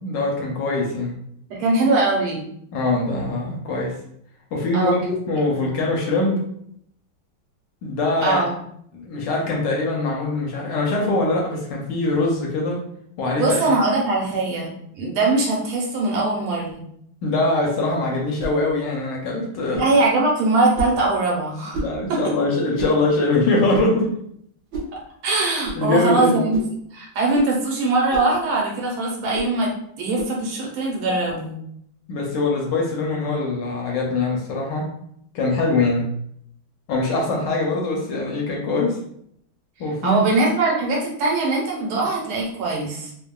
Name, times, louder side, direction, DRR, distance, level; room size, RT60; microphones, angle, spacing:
voice 1, 0.0-1.1 2.7-4.0 4.5-6.4 7.8-8.5 8.9-12.8 13.2-13.7 17.2-19.9 21.7-24.1 25.8-26.4 31.1-31.2 32.1-34.9 35.3-36.1 36.9-39.0 39.8-40.2, left 2 dB, 75° left, -1 dB, 1.1 m, -22 dB
voice 2, 1.5-2.4 4.7-5.1 5.5-5.7 8.2-8.5 13.3-16.8 19.5-21.8 22.1-22.2 24.9-26.6 26.9-29.7 30.0-31.6 40.0-43.1, right 2 dB, 85° right, -2 dB, 1.6 m, -22 dB
sound 1, 18.4-18.6 19.7-19.9 20.7-21.0 21.7-22.0 22.8-23.0 23.7-24.0 24.7-24.9 25.6-25.8 26.5-26.8 27.3-27.5 28.1-28.3 29.3-29.5 30.1-30.4, right 1 dB, 60° right, 1.0 m, -31 dB
3.5 x 2.0 x 2.2 m, 0.70 s
omnidirectional pair, 2.2 m